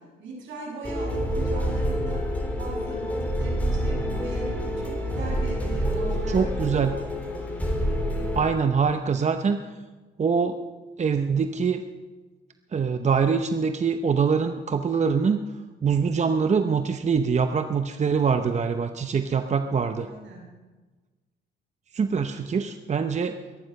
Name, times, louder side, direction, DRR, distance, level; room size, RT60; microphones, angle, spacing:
voice 1, 0.2-7.0 20.0-20.4, right 1 dB, 70° right, -2 dB, 7.1 m, -38 dB
sound 1, 0.8-8.4, equal, 5° left, 4.0 m, -27 dB
voice 2, 6.3-6.9 8.3-9.6 10.2-10.6 11.0-11.8 12.7-15.4 15.8-20.1 21.9-23.4, right 6 dB, 35° right, 8 dB, 0.8 m, -24 dB
23.0 x 10.0 x 5.5 m, 1.3 s
cardioid pair, 90°, 20 cm